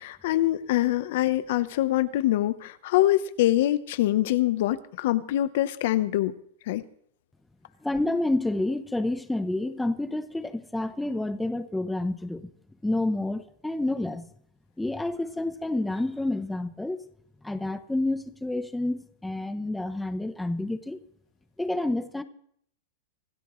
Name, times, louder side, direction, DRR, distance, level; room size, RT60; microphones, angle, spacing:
voice 1, 0.0-6.3 6.7-6.8, left 14 dB, 65° left, 14 dB, 0.9 m, -24 dB
voice 2, 7.8-12.5 12.8-14.3 14.8-17.0 17.4-21.0 21.6-22.2, left 2 dB, 5° left, 10 dB, 0.8 m, -29 dB
26.0 x 12.5 x 3.2 m, 0.65 s
supercardioid pair, 140°, 0 cm